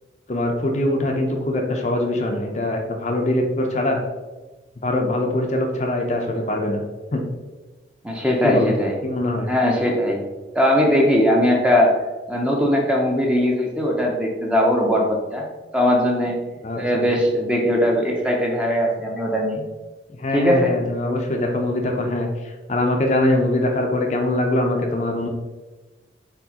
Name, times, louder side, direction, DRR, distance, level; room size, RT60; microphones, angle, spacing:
voice 1, 0.3-4.0 4.8-6.8 7.1-7.2 8.4-8.8 9.0-9.5 16.6-17.0 20.2-25.3, left 1 dB, 40° left, 2 dB, 0.5 m, -23 dB
voice 2, 8.0-8.9 9.5-10.2 10.5-11.9 12.3-15.4 15.7-16.4 16.7-19.6 20.3-20.7, equal, 5° right, -1 dB, 0.6 m, -19 dB
4.5 x 4.0 x 2.8 m, 1.2 s
head